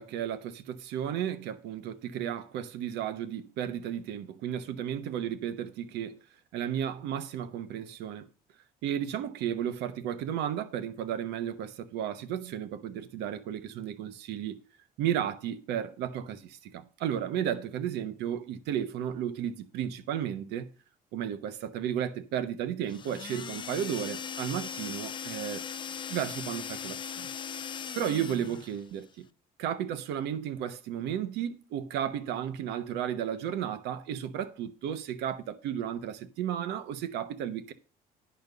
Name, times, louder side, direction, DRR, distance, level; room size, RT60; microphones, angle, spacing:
voice 1, 0.0-6.2 6.5-8.3 8.8-14.6 15.0-20.7 21.1-25.7 26.1-27.3 27.9-29.2 29.6-37.7, right 9 dB, 90° right, 1.0 m, -33 dB
sound 1, 22.9-28.8, left 7 dB, 30° left, 0.4 m, -39 dB
10.5 x 4.4 x 6.6 m
cardioid pair, 110°, 17 cm